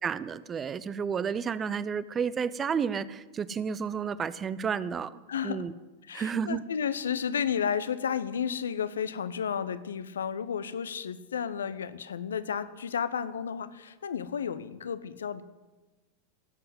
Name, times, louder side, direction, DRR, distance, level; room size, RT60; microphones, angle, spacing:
voice 1, 0.0-5.7 6.1-6.6, right 6 dB, 20° right, 17 dB, 0.6 m, -31 dB
voice 2, 5.3-5.7 6.1-15.4, left 7 dB, 65° left, 14 dB, 0.8 m, -32 dB
18.0 x 7.8 x 8.3 m, 1.2 s
figure-of-eight pair, 90°, 0 cm